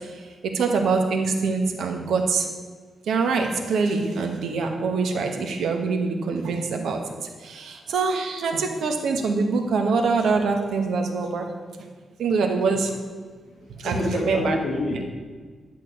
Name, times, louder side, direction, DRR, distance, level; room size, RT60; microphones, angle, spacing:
voice 1, 0.5-2.4 3.1-7.0 7.5-11.5 12.2-12.9 13.8-14.6 14.9-15.0, right 4 dB, 75° right, 4 dB, 1.3 m, -24 dB
voice 2, 13.5-15.0, left 2 dB, 45° left, -1 dB, 2.2 m, -28 dB
10.5 x 4.6 x 8.1 m, 1.5 s
wide cardioid pair, 175°, 0 cm